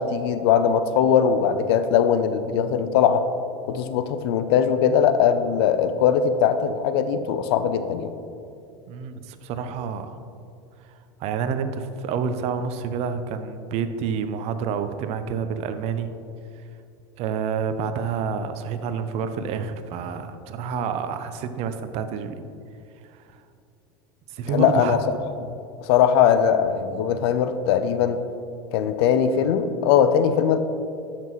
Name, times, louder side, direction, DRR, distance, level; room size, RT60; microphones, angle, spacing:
voice 1, 0.0-3.2 3.7-8.1 24.5-25.0 25.4-25.5 25.8-28.2 28.7-30.6, left 8 dB, 70° left, 10 dB, 0.6 m, -20 dB
voice 2, 8.9-10.2 11.2-16.1 17.2-22.4 23.1-23.4 24.3-25.0, right 6 dB, 50° right, 10 dB, 0.7 m, -28 dB
12.0 x 5.9 x 3.1 m, 2.5 s
hypercardioid pair, 95°, 13 cm